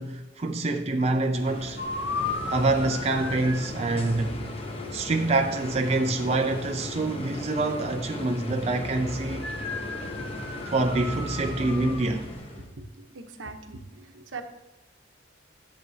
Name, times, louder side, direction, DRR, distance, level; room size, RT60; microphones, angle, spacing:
voice 1, 0.0-1.8 2.5-4.4 4.9-9.5 10.7-12.3, right 2 dB, 35° right, 0.5 m, -26 dB
sound 1, 1.3-12.7, left 1 dB, 30° left, 0.9 m, -36 dB
sound 2, 1.8-3.8 9.4-12.1, left 3 dB, 70° left, 0.9 m, -35 dB
voice 2, 13.1-14.4, right 4 dB, 85° right, 0.9 m, -40 dB
11.0 x 7.4 x 2.8 m
head